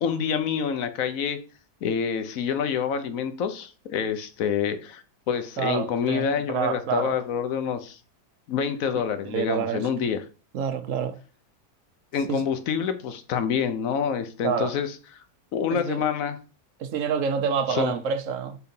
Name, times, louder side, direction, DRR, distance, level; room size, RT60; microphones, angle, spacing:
voice 1, 0.0-1.4 1.8-8.0 8.5-10.2 12.1-15.0 15.5-16.4 17.7-17.9, left 7 dB, 60° left, 1.1 m, -27 dB
voice 2, 5.6-7.1 9.3-9.9 10.5-11.1 12.3-12.4 14.4-14.7 15.7-16.0 16.8-18.6, right 7 dB, 60° right, 0.9 m, -27 dB
4.7 x 4.1 x 5.2 m
omnidirectional pair, 1.7 m